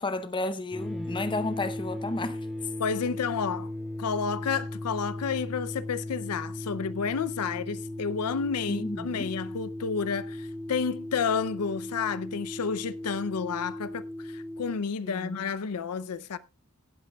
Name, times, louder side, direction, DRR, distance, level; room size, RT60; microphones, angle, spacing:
voice 1, 0.0-2.4 8.7-9.3 15.0-15.5, left 2 dB, 20° left, 0.7 m, -32 dB
sound 1, 0.7-14.8, left 1 dB, ahead, 2.6 m, -37 dB
voice 2, 2.8-3.7 4.0-16.4, left 6 dB, 90° left, 0.5 m, -31 dB
17.5 x 10.5 x 2.3 m
head